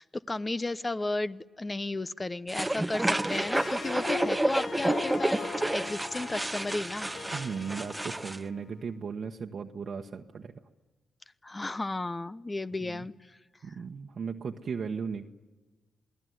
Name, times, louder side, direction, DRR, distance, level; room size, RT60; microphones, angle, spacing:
voice 1, 0.0-5.4 5.7-7.1 11.4-13.4 13.7-13.8, left 2 dB, 25° left, 15 dB, 0.9 m, -34 dB
sound 1, 2.5-8.4, right 1 dB, 15° right, 1.0 m, -30 dB
Harp, 3.2-8.6, left 5 dB, 65° left, 1.4 m, -40 dB
voice 2, 7.3-10.6 12.8-13.1 13.6-15.3, right 6 dB, 60° right, 2 dB, 1.3 m, -36 dB
28.0 x 19.0 x 9.5 m, 1.2 s
supercardioid pair, 55°, 0 cm